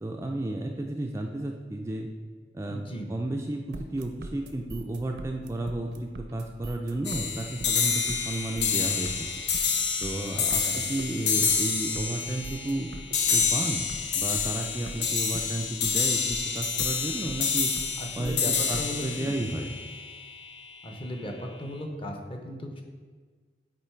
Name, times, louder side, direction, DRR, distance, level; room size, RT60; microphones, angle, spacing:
voice 1, 0.0-2.1 2.5-9.4 10.0-12.9 13.3-13.9 14.1-17.7 18.2-19.7, right 1 dB, 15° right, 1 dB, 0.3 m, -33 dB
voice 2, 2.7-3.1 10.3-10.8 18.0-19.4 20.8-22.8, equal, 30° left, 2 dB, 0.7 m, -37 dB
sound 1, 3.7-19.0, right 2 dB, 75° right, 0.6 m, -42 dB
sound 2, 7.0-20.5, left 5 dB, 80° left, 0.7 m, -28 dB
8.2 x 3.1 x 4.4 m, 1.5 s
head